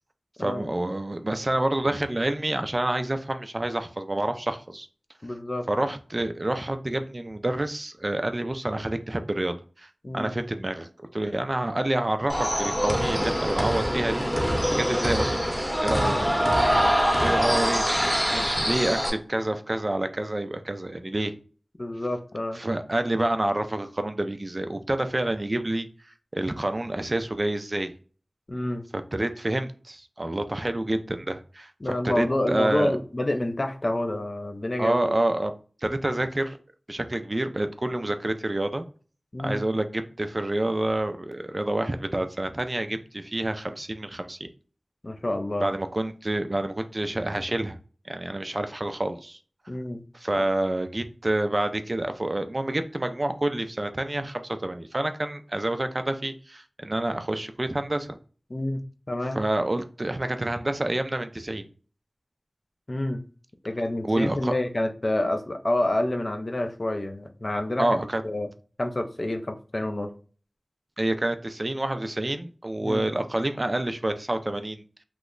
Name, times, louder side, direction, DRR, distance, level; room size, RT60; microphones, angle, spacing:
voice 1, 0.4-4.9 5.7-14.3 14.8-15.3 15.8-16.1 17.0-17.8 18.3-21.3 22.5-27.9 28.9-33.0 34.8-35.5 35.8-36.6 36.9-38.8 39.4-44.5 45.6-47.8 48.1-49.4 50.1-58.2 59.3-61.7 64.0-64.5 67.8-68.2 71.0-75.0, right 1 dB, 40° right, 8 dB, 0.4 m, -28 dB
voice 2, 5.2-5.7 10.0-10.3 15.9-16.1 21.8-22.6 28.5-28.9 31.8-35.1 39.3-39.6 45.0-45.7 49.7-50.0 50.3-50.4 58.5-58.8 59.1-59.4 62.9-63.2 63.6-67.9 68.2-68.5 68.8-70.1 72.8-73.0, left 1 dB, 45° left, 6 dB, 0.5 m, -28 dB
sound 1, 12.3-19.1, equal, 5° right, 0.8 m, -24 dB
3.0 x 2.1 x 3.6 m, 0.39 s
wide cardioid pair, 55°, 0 cm